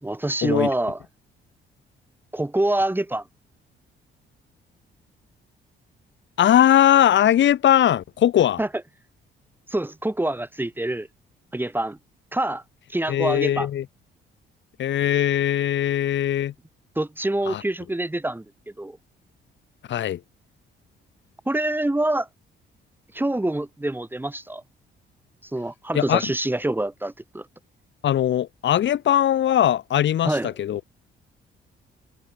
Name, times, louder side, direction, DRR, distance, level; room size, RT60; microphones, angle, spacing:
voice 1, 0.0-1.0 2.3-3.2 8.6-8.7 9.7-11.1 11.5-12.0 12.3-12.6 12.9-13.7 17.0-18.5 18.8-19.0 21.5-22.3 23.1-24.6 25.5-27.5 30.2-30.5, right 1 dB, 10° right, 3.4 m, -25 dB
voice 2, 6.4-8.6 13.1-13.8 14.8-16.5 17.5-17.6 19.9-20.2 25.9-26.2 28.0-30.8, left 11 dB, 70° left, 2.3 m, -20 dB
cardioid pair, 90°, 20 cm